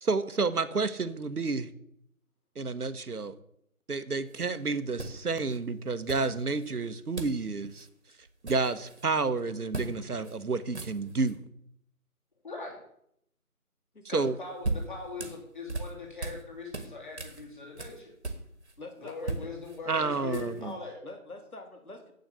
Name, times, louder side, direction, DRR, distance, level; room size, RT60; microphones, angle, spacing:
voice 1, 0.0-1.7 2.6-3.3 3.9-7.9 8.4-11.4 14.1-14.4 19.9-20.8, right 4 dB, 80° right, 12 dB, 1.0 m, -30 dB
sound 1, 4.3-4.4 5.0-5.6 6.1-6.7 7.2-7.4 7.7-7.9 8.2-9.1 9.7-9.9 10.2-10.4 10.6-11.4 14.2-16.4 16.7-18.8 19.1-20.7, right 3 dB, 45° right, 1.4 m, -38 dB
voice 2, 12.4-12.8 14.1-18.1 19.0-21.0, left 3 dB, 35° left, -1 dB, 2.9 m, -40 dB
voice 3, 13.9-14.4 18.8-19.6 21.0-22.1, left 2 dB, 75° left, 4 dB, 2.6 m, -46 dB
8.0 x 6.5 x 8.2 m, 0.73 s
figure-of-eight pair, 170°, 45 cm